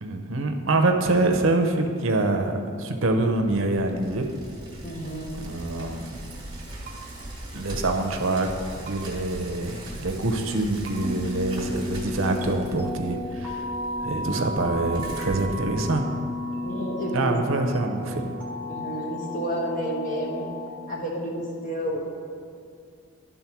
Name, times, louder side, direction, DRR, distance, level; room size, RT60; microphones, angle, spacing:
voice 1, 0.0-4.3 5.4-6.2 7.5-8.5 8.9-13.7 14.0-16.0 17.1-18.4, right 2 dB, 70° right, 4 dB, 0.8 m, -25 dB
Bicycle, 3.3-16.3, right 1 dB, 20° right, 1.6 m, -40 dB
voice 2, 4.8-5.4 14.1-14.3 16.6-17.4 18.7-20.5 20.9-22.0, right 1 dB, 40° left, -3 dB, 1.5 m, -31 dB
sound 1, 6.8-7.0 8.8-9.0 10.8-11.0 12.4-12.5, right 6 dB, 40° right, 1.4 m, -42 dB
sound 2, 11.0-20.7, left 1 dB, 5° left, 0.8 m, -33 dB
11.0 x 3.8 x 5.9 m, 2.4 s
head